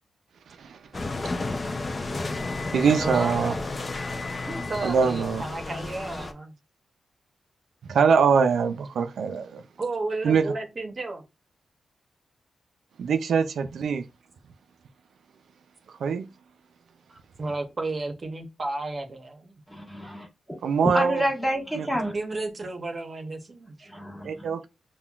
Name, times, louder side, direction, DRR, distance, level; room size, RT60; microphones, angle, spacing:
voice 1, 0.6-1.0 2.7-3.5 4.8-5.4 7.9-9.6 10.2-10.4 13.0-14.0 16.0-16.3 20.6-21.2 21.8-21.9 24.2-24.7, right 6 dB, 80° right, 0.3 m, -23 dB
sound 1, 0.9-6.3, left 3 dB, 40° left, 0.5 m, -32 dB
voice 2, 3.0-3.4 4.5-6.5 9.8-11.2 17.1-19.5 21.8-23.9, right 2 dB, 40° right, 0.8 m, -33 dB
voice 3, 19.7-20.3 20.9-22.1 23.9-24.5, equal, 10° left, 1.4 m, -29 dB
5.5 x 2.2 x 2.3 m
cardioid pair, 80°, 0 cm